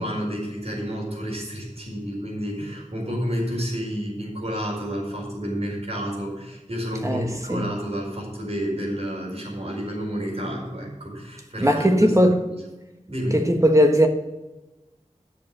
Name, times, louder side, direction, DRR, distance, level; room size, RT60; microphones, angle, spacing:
voice 1, 0.0-12.2 12.5-12.6 13.1-13.5, equal, 55° right, -1 dB, 4.7 m, -30 dB
voice 2, 7.0-7.7 11.6-12.4 13.3-14.1, equal, 25° right, 3 dB, 1.5 m, -18 dB
11.0 x 7.0 x 6.2 m, 1.0 s
wide cardioid pair, 55°, 13 cm